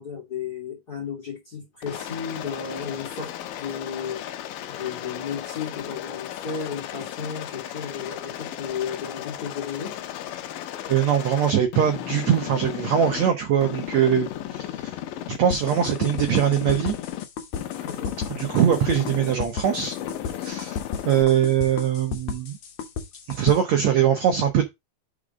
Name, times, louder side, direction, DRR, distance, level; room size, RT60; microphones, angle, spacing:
voice 1, 0.0-3.3 3.6-4.3 4.7-10.0 17.8-18.2, left 6 dB, 35° left, 1.7 m, -34 dB
Aircraft, 1.8-13.3 13.6-15.4 15.6-17.3 17.5-19.3 19.6-21.2, left 12 dB, 80° left, 2.3 m, -35 dB
voice 2, 10.9-15.0 15.3-17.0 18.3-19.9 20.4-20.8 21.1-22.6 23.3-24.7, right 9 dB, 75° right, 1.6 m, -22 dB
sound 1, 15.5-23.6, left 6 dB, 60° left, 2.1 m, -33 dB
4.9 x 4.9 x 5.1 m
omnidirectional pair, 4.1 m